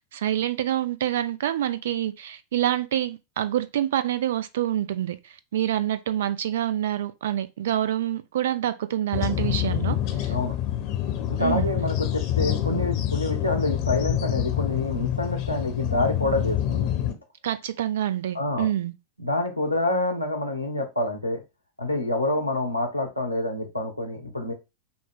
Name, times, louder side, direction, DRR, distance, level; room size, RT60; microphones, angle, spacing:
voice 1, 0.1-10.3 11.4-11.7 17.4-18.9, right 11 dB, 60° right, 0.5 m, -27 dB
sound 1, 9.1-17.1, left 11 dB, 45° left, 0.9 m, -27 dB
voice 2, 11.3-16.9 18.3-18.7 19.2-21.4 21.8-24.5, left 2 dB, 90° left, 1.1 m, -27 dB
6.0 x 2.2 x 3.7 m
figure-of-eight pair, 90°, 0 cm